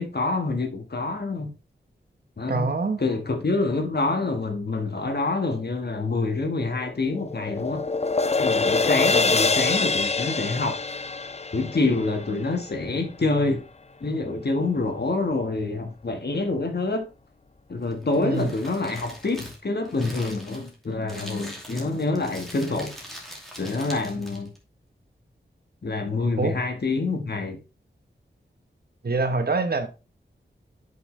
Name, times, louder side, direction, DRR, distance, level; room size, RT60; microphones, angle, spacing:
voice 1, 0.0-1.5 2.4-7.8 8.4-10.8 11.5-13.6 14.0-17.1 17.7-22.9 23.6-24.5 25.8-27.6, left 3 dB, 55° left, 1.5 m, -26 dB
voice 2, 2.5-3.0 18.2-18.5 26.4-26.6 29.0-29.9, right 3 dB, 50° right, 1.1 m, -25 dB
sound 1, 6.6-12.9, left 4 dB, 35° left, 0.5 m, -25 dB
Crumpling crinkling, 17.8-24.6, equal, ahead, 2.5 m, -42 dB
8.0 x 5.7 x 3.2 m
wide cardioid pair, 70°, 20 cm